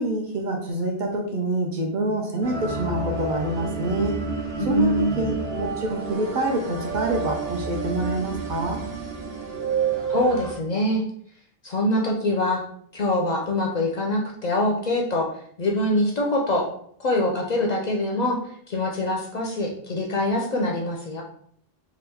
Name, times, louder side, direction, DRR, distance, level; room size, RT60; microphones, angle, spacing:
voice 1, 0.0-4.1 4.6-8.8, right 1 dB, 55° right, 1 dB, 0.7 m, -26 dB
sound 1, 2.4-10.5, right 5 dB, 75° right, 1.0 m, -29 dB
voice 2, 4.6-5.3 10.1-11.0 11.6-12.7 12.9-15.3 15.6-16.7 17.0-21.2, left 1 dB, 55° left, 0 dB, 0.5 m, -24 dB
2.9 x 2.3 x 3.4 m, 0.63 s
omnidirectional pair, 1.0 m